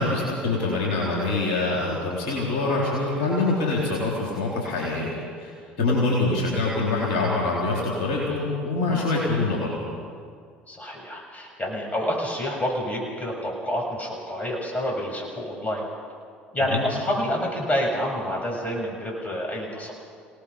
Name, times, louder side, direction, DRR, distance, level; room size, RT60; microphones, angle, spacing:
voice 1, 0.0-5.5 5.8-9.7 16.7-16.9, left 2 dB, 65° left, -4 dB, 4.2 m, -25 dB
voice 2, 10.7-15.9 16.5-19.9, equal, 25° left, -1 dB, 7.4 m, -28 dB
28.5 x 18.5 x 5.1 m, 2.2 s
figure-of-eight pair, 60°, 6 cm